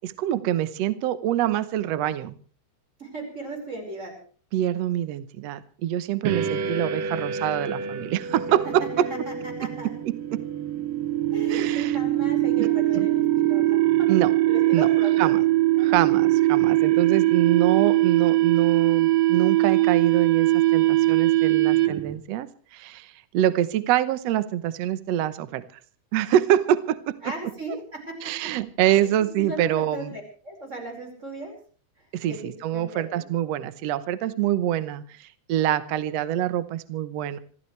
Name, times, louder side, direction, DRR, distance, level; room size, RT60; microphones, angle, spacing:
voice 1, 0.0-2.4 4.5-9.1 9.6-10.4 11.5-12.0 12.6-12.7 13.0-13.1 14.1-14.3 14.7-14.9 15.2-15.4 15.8-25.6 26.1-27.2 28.2-30.1 32.1-37.4, right 12 dB, 90° right, 13 dB, 1.4 m, -25 dB
voice 2, 3.0-4.1 9.1-9.9 11.3-14.1 14.5-15.4 15.7-16.0 27.2-28.5 29.0-31.6 32.0-33.2, right 1 dB, 20° right, 2 dB, 5.3 m, -37 dB
sound 1, 6.2-22.2, right 15 dB, 70° right, 2.6 m, -22 dB
26.5 x 15.0 x 3.3 m, 0.42 s
omnidirectional pair, 4.4 m